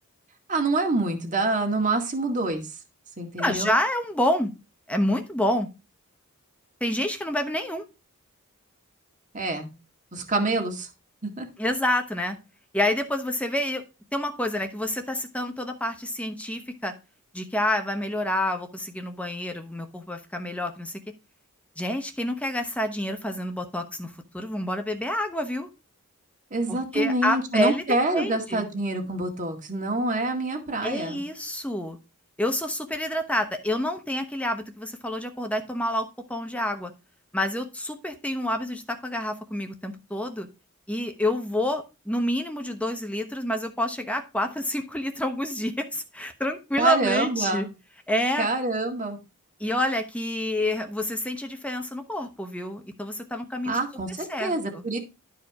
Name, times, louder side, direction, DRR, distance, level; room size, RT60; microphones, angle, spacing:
voice 1, 0.5-2.6 3.2-3.7 9.3-9.7 10.1-10.9 11.2-11.5 26.5-31.2 46.8-47.7 48.4-49.2 53.7-55.0, right 2 dB, 35° right, 4 dB, 2.0 m, -26 dB
voice 2, 3.4-4.5 4.9-5.7 6.8-7.8 11.6-12.4 12.7-13.8 14.1-16.9 17.3-21.0 21.8-25.7 26.7-27.8 28.1-28.6 30.8-32.0 32.4-36.9 37.3-40.5 40.9-47.7 48.1-48.5 49.6-53.8 54.3-54.8, left 1 dB, 5° left, 6 dB, 1.0 m, -28 dB
12.0 x 4.8 x 4.8 m, 0.28 s
head